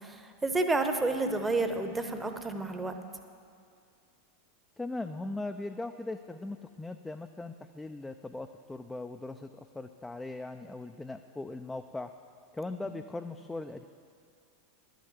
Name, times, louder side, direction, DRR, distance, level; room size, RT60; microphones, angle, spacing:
voice 1, 0.0-2.9, right 2 dB, 10° right, 7 dB, 0.8 m, -30 dB
voice 2, 4.8-12.1 12.5-13.8, left 2 dB, 10° left, 6 dB, 0.4 m, -39 dB
11.5 x 6.5 x 8.1 m, 2.3 s
figure-of-eight pair, 85°, 0 cm